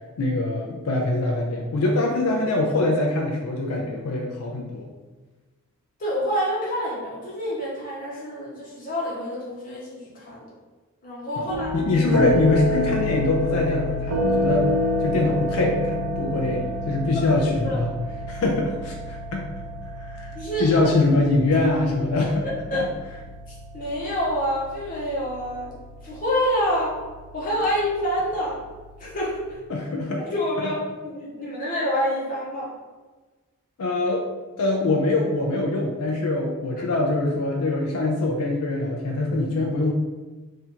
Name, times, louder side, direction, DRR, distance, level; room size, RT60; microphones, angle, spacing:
voice 1, 0.2-4.9 11.4-14.7 15.0-17.9 18.3-19.5 20.0-22.5 29.7-30.2 33.8-34.2 34.6-39.9, left 2 dB, 75° left, 0 dB, 0.5 m, -23 dB
voice 2, 6.0-10.5 11.0-11.7 17.3-17.8 20.3-20.9 22.4-22.9 23.7-25.8 26.0-27.0 27.3-28.6 29.0-29.6 30.3-32.7, equal, 40° left, -6 dB, 0.8 m, -27 dB
sound 1, 11.5-29.5, left 1 dB, 90° right, 0.6 m, -29 dB
2.8 x 2.5 x 4.2 m, 1.2 s
head